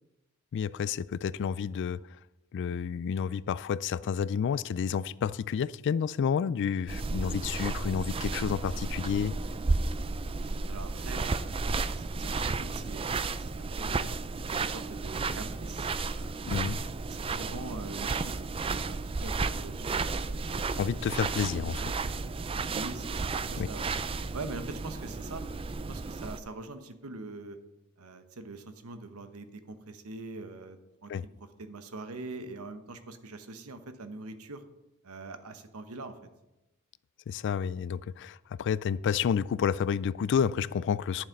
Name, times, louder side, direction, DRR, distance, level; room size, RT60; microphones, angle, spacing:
voice 1, 0.5-2.0 2.5-9.4 16.5-16.8 20.8-21.9 23.6-23.7 31.1-31.2 37.3-41.2, left 7 dB, 55° left, 19 dB, 0.3 m, -30 dB
sound 1, 6.9-26.4, right 3 dB, 25° right, 0.4 m, -33 dB
voice 2, 10.4-14.0 14.6-15.9 16.2-16.4 17.1-20.2 22.7-23.9 24.3-25.4 25.9-27.6 28.0-31.1 31.4-34.6 35.0-36.1, right 3 dB, 75° right, 9 dB, 1.0 m, -43 dB
11.0 x 7.2 x 5.2 m, 0.96 s
head